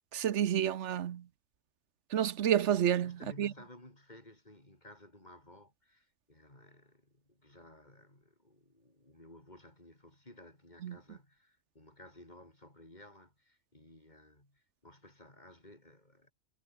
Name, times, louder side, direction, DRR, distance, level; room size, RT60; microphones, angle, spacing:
voice 1, 0.1-1.2 2.1-3.1 3.4-3.5 10.8-11.0, right 10 dB, 80° right, 1.1 m, -29 dB
voice 2, 3.0-16.3, left 1 dB, 40° left, 5.5 m, -56 dB
omnidirectional pair, 1.2 m